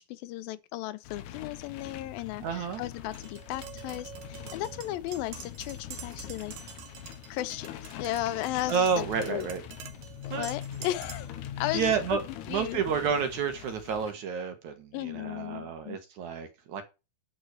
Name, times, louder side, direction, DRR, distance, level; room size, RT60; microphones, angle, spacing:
voice 1, 0.0-6.6 7.3-9.5 10.2-11.3 11.6-12.2 12.5-12.8 14.9-16.0, left 15 dB, 90° left, 2.5 m, -35 dB
sound 1, 1.0-14.1, left 10 dB, 70° left, 2.2 m, -43 dB
voice 2, 2.4-2.8 8.7-9.6 10.3-10.5 11.7-12.2 12.5-16.8, right 6 dB, 60° right, 2.6 m, -30 dB
Tap, 3.1-11.4, right 8 dB, 80° right, 2.7 m, -47 dB
11.0 x 4.9 x 6.4 m
omnidirectional pair, 4.0 m